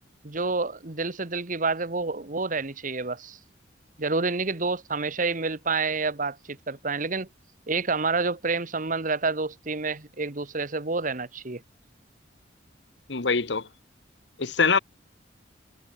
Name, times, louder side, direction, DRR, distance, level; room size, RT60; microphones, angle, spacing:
voice 1, 0.2-3.4 4.0-7.3 7.7-11.6, right 4 dB, 45° right, 1.6 m, -28 dB
voice 2, 13.1-13.7 14.4-14.8, left 5 dB, 75° left, 1.3 m, -23 dB
head